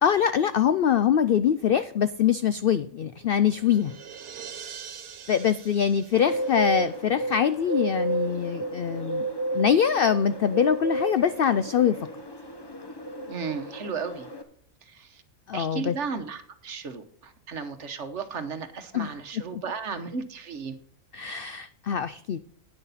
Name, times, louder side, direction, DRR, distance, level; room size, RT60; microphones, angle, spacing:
voice 1, 0.0-4.0 5.3-9.2 9.5-12.0 15.5-16.0 18.9-19.1 19.5-19.6 21.1-22.4, left 8 dB, 70° left, 13 dB, 0.5 m, -23 dB
sound 1, 2.9-7.5, right 7 dB, 80° right, 1.5 m, -44 dB
Bird, 6.1-14.4, right 2 dB, 20° left, 0.9 m, -32 dB
voice 2, 13.3-14.3 14.8-15.2 15.5-20.8, right 5 dB, 55° right, 9 dB, 1.3 m, -35 dB
11.0 x 9.2 x 4.1 m, 0.62 s
omnidirectional pair, 1.5 m